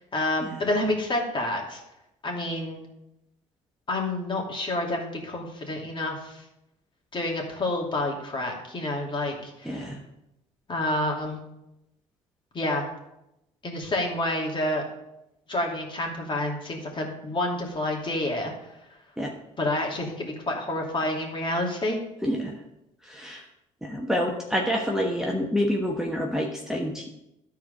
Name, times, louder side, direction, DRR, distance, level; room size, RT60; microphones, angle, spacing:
voice 1, 0.0-1.8 2.2-2.8 3.9-6.4 7.1-9.9 10.7-11.4 12.5-12.8 13.6-14.9 15.5-18.5 19.6-22.0, left 1 dB, 35° left, 0 dB, 2.8 m, -28 dB
voice 2, 9.6-10.0 19.2-19.3 22.2-22.6 23.0-23.5 23.8-27.1, equal, 5° right, -1 dB, 1.3 m, -28 dB
12.0 x 4.7 x 5.4 m, 0.87 s
supercardioid pair, 70°, 15 cm